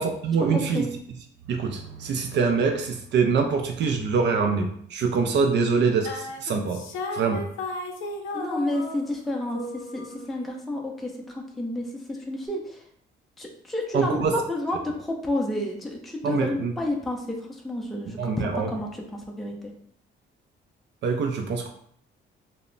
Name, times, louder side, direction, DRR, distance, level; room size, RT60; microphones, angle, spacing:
voice 1, 0.0-6.8 7.1-7.4 13.9-14.4 16.2-16.7 18.1-18.7 21.0-21.7, right 5 dB, 65° right, 3 dB, 0.4 m, -25 dB
voice 2, 0.5-0.9 8.3-12.6 13.4-14.2 14.5-17.2 17.6-18.9 19.4-19.7, left 1 dB, ahead, 0 dB, 0.4 m, -30 dB
sound 1, 6.0-9.3 9.5-10.7, left 2 dB, 85° left, 0.5 m, -35 dB
2.0 x 2.0 x 3.7 m, 0.65 s
cardioid pair, 90°, 20 cm